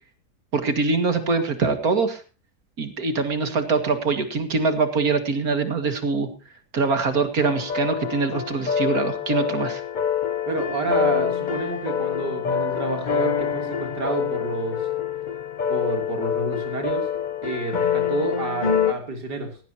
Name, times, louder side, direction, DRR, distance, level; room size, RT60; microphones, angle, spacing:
voice 1, 0.5-2.2 2.8-6.3 6.7-9.8, right 4 dB, 60° right, 8 dB, 2.7 m, -23 dB
sound 1, 7.4-18.9, left 8 dB, 35° left, 0.8 m, -26 dB
voice 2, 10.5-14.8 15.7-17.1 17.4-19.6, right 3 dB, 85° right, 4 dB, 3.9 m, -29 dB
18.0 x 17.0 x 2.9 m, 0.33 s
omnidirectional pair, 1.7 m